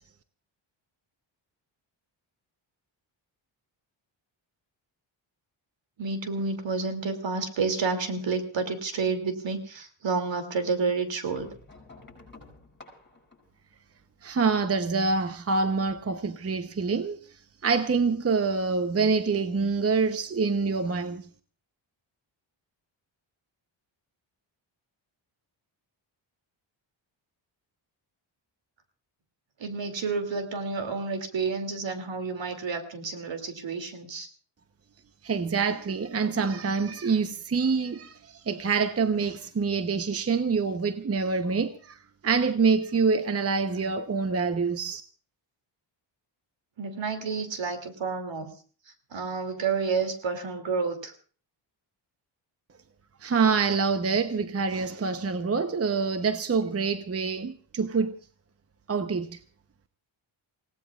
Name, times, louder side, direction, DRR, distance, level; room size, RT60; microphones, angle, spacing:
voice 1, 6.0-11.5 29.6-34.3 46.8-48.5 49.1-51.1, right 4 dB, 65° right, 2.7 m, -30 dB
sound 1, 11.3-14.5 15.7-16.6 17.7-17.8 18.1-18.2, left 3 dB, 20° left, 7.5 m, -52 dB
voice 2, 14.2-17.2 17.6-21.3 35.2-45.0 53.2-58.2 58.9-59.4, right 4 dB, 30° right, 0.9 m, -26 dB
28.5 x 17.5 x 2.4 m
cardioid pair, 95°, 48 cm